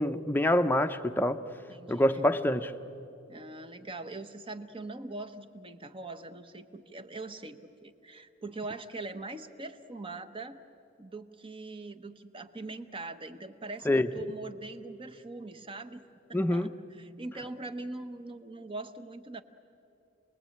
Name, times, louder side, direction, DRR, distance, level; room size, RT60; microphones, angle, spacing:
voice 1, 0.0-1.4 1.9-2.7 13.9-14.1 16.3-16.7, left 1 dB, 10° left, 8 dB, 0.7 m, -26 dB
voice 2, 1.7-2.0 3.3-10.6 11.0-16.0 16.3-16.7 17.0-19.4, right 2 dB, 25° right, 9 dB, 1.0 m, -42 dB
28.0 x 20.5 x 8.7 m, 2.8 s
head